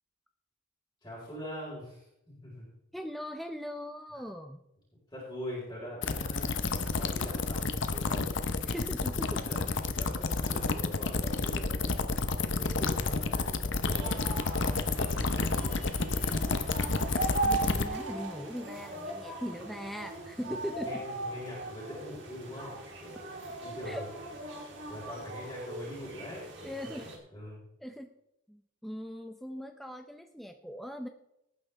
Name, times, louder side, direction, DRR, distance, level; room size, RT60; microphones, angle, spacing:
voice 1, 1.0-2.7 5.1-8.3 9.3-12.1 12.5-14.5 15.0-15.8 20.4-22.7 23.0-24.0 24.5-27.6, equal, 15° left, -7 dB, 4.4 m, -43 dB
voice 2, 2.9-4.6 8.7-9.5 17.4-21.0 23.9-24.0 26.6-27.1 27.8-28.1 28.5-31.1, equal, ahead, 5 dB, 0.5 m, -40 dB
sound 1, 6.0-17.8, left 3 dB, 55° left, 0.9 m, -30 dB
sound 2, 13.9-27.2, right 2 dB, 60° right, 3.1 m, -39 dB
18.5 x 9.5 x 3.4 m, 0.82 s
head